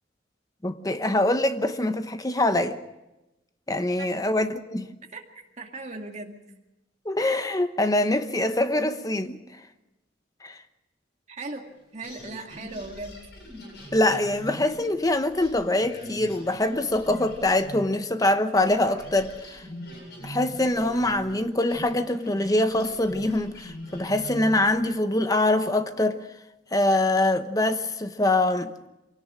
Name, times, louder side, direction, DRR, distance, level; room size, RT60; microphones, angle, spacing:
voice 1, 0.6-2.8 3.7-4.9 7.0-9.4 10.4-10.6 13.9-19.6 20.2-26.2 26.7-28.7, left 1 dB, 20° left, 0.9 m, -24 dB
voice 2, 5.1-6.4 11.3-11.7 11.9-13.2, right 2 dB, 40° right, 2.2 m, -38 dB
sound 1, 12.0-18.3 18.6-24.8, equal, 65° left, 7.8 m, -41 dB
24.5 x 17.5 x 6.3 m
head